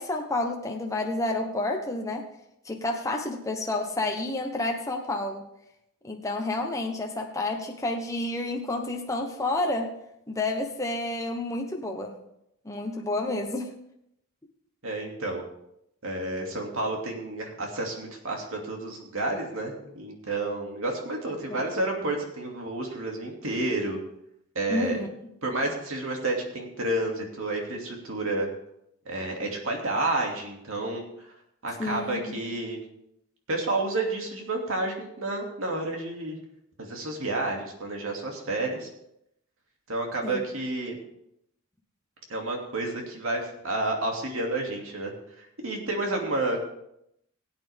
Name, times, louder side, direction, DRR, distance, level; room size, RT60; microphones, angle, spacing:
voice 1, 0.0-2.3 2.6-5.5 6.0-9.9 10.3-12.1 12.6-13.7 21.5-21.6 21.9-22.0 24.7-25.1 31.8-32.4 40.2-40.4, left 2 dB, 15° left, 1 dB, 1.1 m, -30 dB
voice 2, 14.8-15.4 16.0-24.0 24.5-25.0 25.4-28.5 29.1-31.3 31.6-32.8 33.5-36.4 36.8-38.9 39.9-41.0 42.3-46.6, right 2 dB, 65° right, 1 dB, 2.6 m, -30 dB
17.5 x 8.6 x 3.6 m, 0.78 s
head